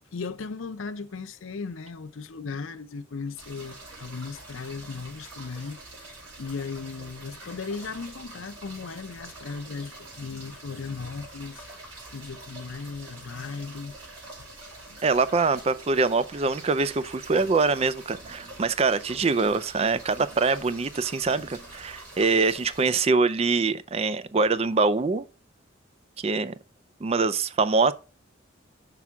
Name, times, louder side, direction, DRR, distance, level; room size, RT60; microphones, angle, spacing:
voice 1, 0.1-6.1 6.4-11.7 12.1-14.0 14.9-15.0, left 4 dB, 90° left, 0.6 m, -37 dB
sound 1, 3.4-22.9, right 2 dB, 85° right, 4.1 m, -45 dB
voice 2, 15.0-25.2 26.2-26.5 27.0-27.9, right 4 dB, 30° right, 0.4 m, -24 dB
6.0 x 5.8 x 3.5 m
head